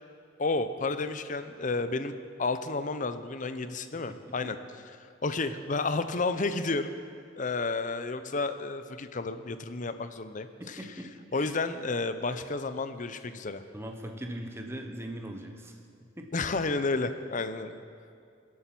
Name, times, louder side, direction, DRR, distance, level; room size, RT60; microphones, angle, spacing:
voice 1, 0.4-2.1 2.4-4.6 5.2-6.9 7.4-10.9 11.3-13.6 16.3-17.8, left 3 dB, 40° left, 11 dB, 0.7 m, -31 dB
voice 2, 10.6-11.5 13.7-15.8 16.2-16.3, right 1 dB, 15° right, 3 dB, 1.1 m, -40 dB
22.0 x 8.6 x 6.0 m, 2.4 s
head